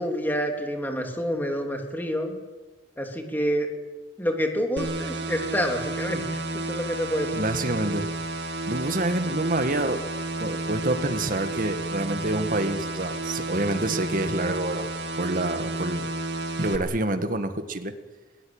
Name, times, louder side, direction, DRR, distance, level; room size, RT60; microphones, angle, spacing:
voice 1, 0.0-2.4 3.0-3.7 4.2-6.3 6.7-7.3, equal, 10° left, 3 dB, 3.3 m, -27 dB
sound 1, 4.8-16.8, right 2 dB, 70° right, 2.5 m, -31 dB
voice 2, 7.3-8.1 8.7-10.0 10.4-14.9 15.1-16.1 16.6-17.9, right 2 dB, 50° right, 8 dB, 1.8 m, -27 dB
22.0 x 19.0 x 9.0 m, 1.2 s
head